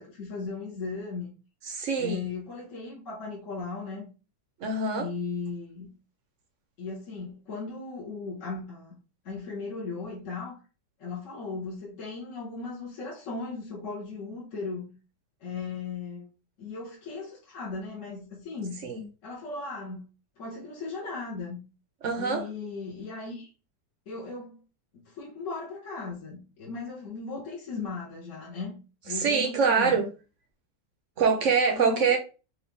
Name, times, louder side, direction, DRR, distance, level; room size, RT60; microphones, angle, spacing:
voice 1, 0.0-1.4 2.0-4.1 5.0-5.9 6.8-8.9 9.2-10.6 11.0-14.9 15.4-16.3 16.6-18.9 19.2-20.0 20.4-21.6 22.2-23.5 24.1-24.6 25.0-28.8 29.0-30.0 31.6-32.2, left 4 dB, 50° left, 1.4 m, -37 dB
voice 2, 1.7-2.2 4.6-5.1 18.8-19.0 22.0-22.4 29.1-30.1 31.2-32.2, right 5 dB, 60° right, 0.9 m, -24 dB
4.6 x 2.6 x 3.4 m
omnidirectional pair, 1.9 m